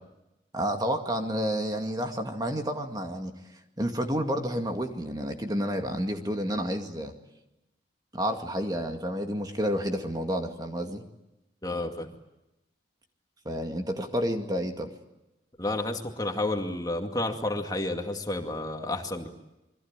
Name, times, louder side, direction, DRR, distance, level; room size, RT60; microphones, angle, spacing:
voice 1, 0.5-3.3 3.8-7.1 8.1-11.0 13.5-14.9, equal, 20° right, 5 dB, 2.1 m, -30 dB
voice 2, 11.6-12.1 15.6-19.3, left 2 dB, 20° left, 4 dB, 2.3 m, -30 dB
28.0 x 23.0 x 9.0 m, 0.93 s
head